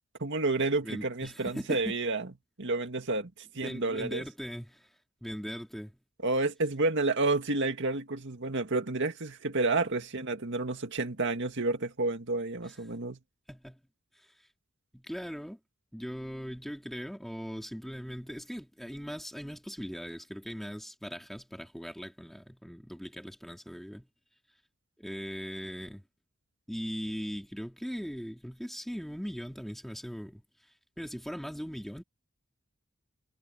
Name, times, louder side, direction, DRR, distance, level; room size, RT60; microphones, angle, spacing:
voice 1, 0.2-2.3 2.6-4.2 6.2-13.2, right 3 dB, 60° right, 2.0 m, -30 dB
voice 2, 0.8-2.0 3.6-4.9 5.2-6.0 12.7-12.8 13.5-13.8 14.2-14.3 14.9-15.6 15.9-24.1 25.0-26.0 26.7-30.4 31.0-32.0, equal, ahead, 3.4 m, -39 dB
head